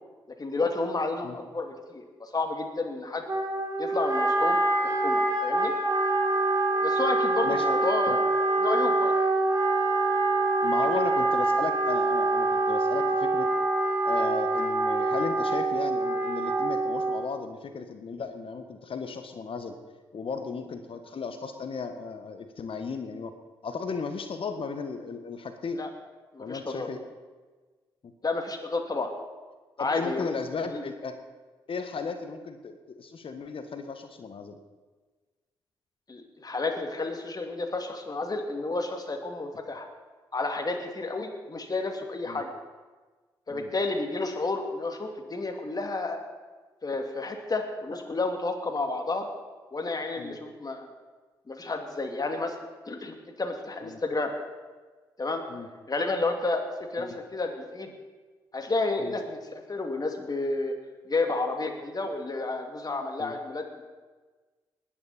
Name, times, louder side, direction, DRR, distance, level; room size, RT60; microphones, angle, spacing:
voice 1, 0.4-3.3 3.8-5.7 6.8-8.2 8.6-9.1 25.8-25.9 26.3-26.9 28.2-29.1 29.8-30.3 30.6-30.8 36.1-39.9 40.3-42.5 43.5-46.2 46.8-49.3 49.7-50.9 51.5-52.6 52.9-54.3 55.2-55.4 55.9-56.6 56.9-57.9 58.5-60.7 61.1-63.8, left 3 dB, 35° left, 4 dB, 2.6 m, -31 dB
Wind instrument woodwind instrument, 3.3-17.3, right 2 dB, 30° right, 3.9 m, -25 dB
voice 2, 7.4-7.8 8.1-8.2 10.6-13.5 14.0-19.7 20.1-23.3 23.6-25.8 26.4-27.0 29.8-31.2 31.7-34.6 42.3-42.4 43.5-43.7 50.2-50.4 53.8-54.0 55.5-55.7 57.0-57.2 59.0-59.1 63.2-63.4, left 5 dB, 55° left, 8 dB, 1.4 m, -35 dB
20.0 x 10.0 x 4.3 m, 1.3 s
hypercardioid pair, 40°, 11 cm